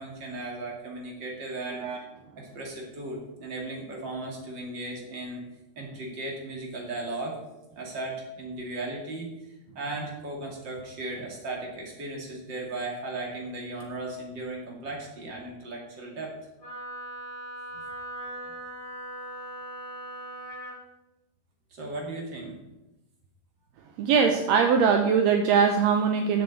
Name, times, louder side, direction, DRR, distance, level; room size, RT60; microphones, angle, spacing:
voice 1, 0.0-1.8 2.3-5.4 5.8-7.4 7.8-9.3 9.7-16.3 21.7-22.5, right 2 dB, 35° right, -1 dB, 2.9 m, -36 dB
Wind instrument woodwind instrument, 16.6-20.8, right 1 dB, 15° left, 4.3 m, -39 dB
voice 2, 24.0-26.4, right 6 dB, 75° right, 4 dB, 1.7 m, -22 dB
7.4 x 7.2 x 8.4 m, 0.97 s
omnidirectional pair, 3.6 m